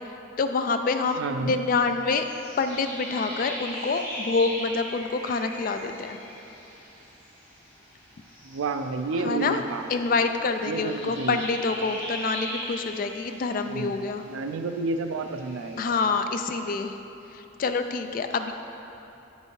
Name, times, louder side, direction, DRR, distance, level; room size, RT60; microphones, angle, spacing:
voice 1, 0.4-2.3 2.6-6.2 9.2-9.6 9.9-14.2 15.8-17.0 17.3-18.5, left 4 dB, 45° left, 7 dB, 0.3 m, -27 dB
voice 2, 1.2-1.5 8.4-9.9 10.6-11.4 13.6-13.9 14.3-15.9, right 3 dB, 80° right, 7 dB, 0.4 m, -30 dB
sound 1, 2.2-15.9, equal, 10° left, 1.5 m, -40 dB
8.6 x 5.4 x 3.2 m, 3.0 s
head